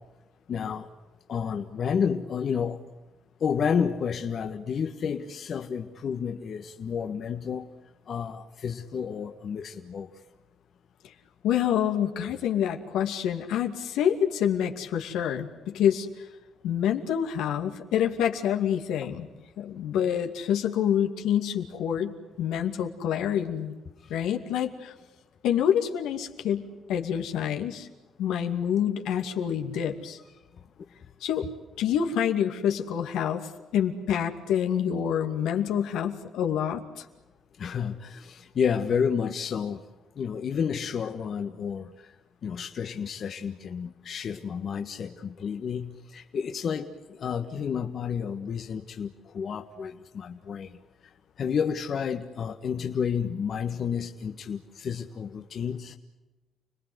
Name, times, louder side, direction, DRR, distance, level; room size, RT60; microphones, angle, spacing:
voice 1, 0.5-0.9 1.3-2.8 3.4-7.7 8.1-10.1 19.0-19.1 37.6-39.8 40.2-41.9 42.4-50.7 51.4-56.0, left 7 dB, 55° left, 5 dB, 1.6 m, -30 dB
voice 2, 11.4-16.2 16.6-19.3 19.6-23.7 24.1-24.9 25.4-27.9 28.2-30.2 31.2-31.5 31.8-37.0, left 9 dB, 90° left, 4 dB, 2.5 m, -27 dB
30.0 x 20.0 x 8.1 m, 1.1 s
cardioid pair, 90°, 0 cm